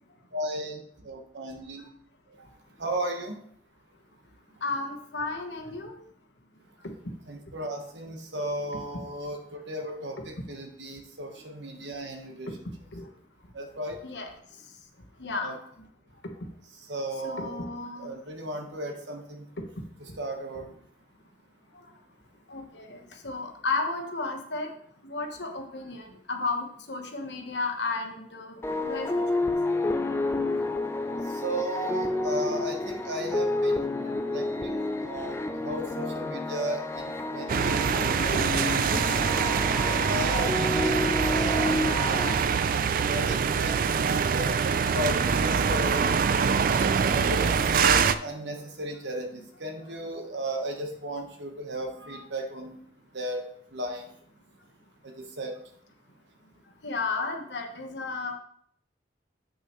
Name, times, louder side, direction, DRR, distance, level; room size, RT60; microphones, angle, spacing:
voice 1, 0.3-1.8 2.8-3.4 7.3-12.6 13.5-14.0 15.4-15.6 16.9-17.7 18.0-19.4 20.0-20.7 29.6-29.7 31.4-37.8 38.1-39.1 39.9-42.6 43.1-44.1 44.3-46.2 47.0-52.8 53.1-54.0 55.0-55.6, right 1 dB, 75° right, 3 dB, 1.3 m, -35 dB
voice 2, 4.6-6.0 12.9-13.1 14.0-14.3 15.2-15.6 17.2-18.1 20.1-20.2 21.7-21.9 22.5-24.7 25.0-29.2 42.1-42.2 45.5-45.7 56.8-58.3, left 3 dB, 70° left, 3 dB, 1.2 m, -33 dB
sound 1, 28.6-42.3, left 2 dB, 15° left, 0.4 m, -30 dB
sound 2, 37.5-48.1, right 6 dB, 50° right, 0.4 m, -24 dB
7.8 x 6.4 x 3.1 m, 0.66 s
head